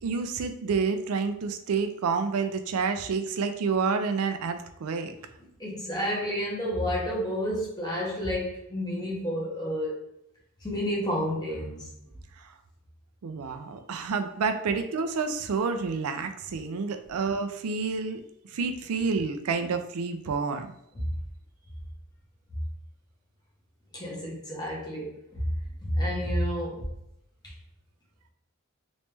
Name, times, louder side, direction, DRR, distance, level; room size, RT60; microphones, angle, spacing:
voice 1, 0.0-5.1 12.4-12.6 13.2-20.7, right 5 dB, 90° right, 8 dB, 0.4 m, -29 dB
voice 2, 5.6-10.0 10.6-11.9 20.9-21.0 23.9-25.4 25.8-26.8 27.4-27.5, equal, 20° left, -3 dB, 1.0 m, -30 dB
3.1 x 3.1 x 3.2 m, 0.81 s
head